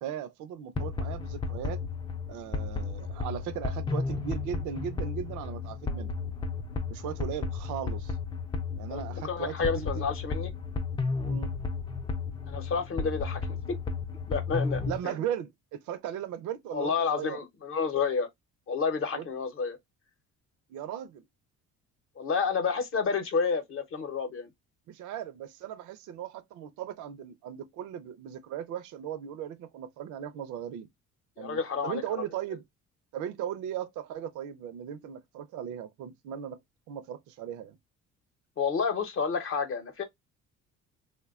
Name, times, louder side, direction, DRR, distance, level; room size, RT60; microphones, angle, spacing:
voice 1, 0.0-1.8 2.3-6.1 6.9-8.2 8.8-10.0 11.2-11.5 14.8-17.4 19.1-19.3 20.7-21.2 24.9-30.9 31.4-32.6 33.1-36.6 36.9-37.8, right 9 dB, 75° right, 0.5 m, -37 dB
sound 1, 0.8-15.0, left 4 dB, 15° left, 0.3 m, -33 dB
voice 2, 8.9-10.5 12.5-13.4 14.3-15.1 16.7-18.3 18.7-19.8 22.2-24.5 31.4-32.3 38.6-40.0, left 5 dB, 45° left, 0.7 m, -30 dB
3.1 x 2.2 x 2.3 m
cardioid pair, 125°, 30 cm